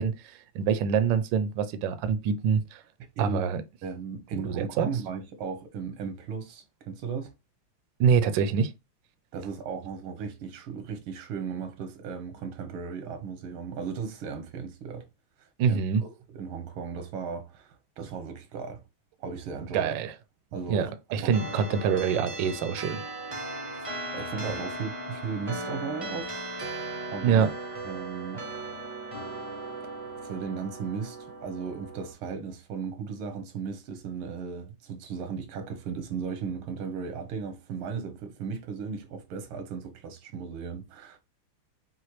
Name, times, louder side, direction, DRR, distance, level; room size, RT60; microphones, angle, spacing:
voice 1, 0.0-2.8 3.2-3.6 4.4-4.9 8.0-8.7 15.6-16.0 19.7-20.1 20.7-23.0 27.2-27.5, right 7 dB, 75° right, 1.2 m, -25 dB
voice 2, 3.8-7.3 9.3-15.1 15.4-18.8 19.2-19.9 20.5-21.4 21.7-21.8 23.7-23.8 24.1-26.3 27.1-27.5 27.8-28.4 30.2-41.2, right 6 dB, 90° right, 1.8 m, -36 dB
sound 1, 21.3-32.1, right 2 dB, 40° right, 0.4 m, -37 dB
5.7 x 2.5 x 3.1 m
omnidirectional pair, 2.3 m